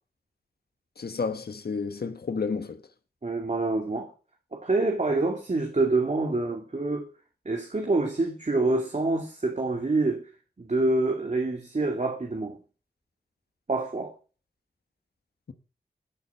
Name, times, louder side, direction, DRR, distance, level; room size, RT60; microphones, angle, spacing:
voice 1, 1.0-2.8, left 5 dB, 70° left, 1.2 m, -31 dB
voice 2, 3.2-4.1 4.5-7.1 7.4-10.3 10.6-12.6 13.7-14.1, right 2 dB, 45° right, 2.6 m, -26 dB
13.5 x 6.6 x 5.7 m
cardioid pair, 40°, 17 cm